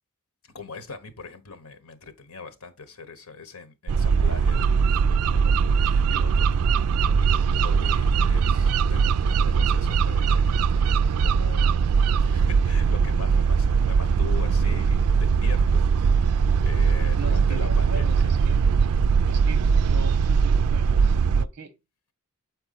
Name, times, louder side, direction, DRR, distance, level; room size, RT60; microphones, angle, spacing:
voice 1, 0.5-6.6 6.9-11.8 12.2-18.3, left 4 dB, 80° left, 1.3 m, -42 dB
sound 1, 3.9-21.4, right 6 dB, 80° right, 0.4 m, -21 dB
voice 2, 17.2-18.9 19.3-21.7, right 3 dB, 50° right, 1.1 m, -40 dB
7.1 x 4.4 x 4.1 m
head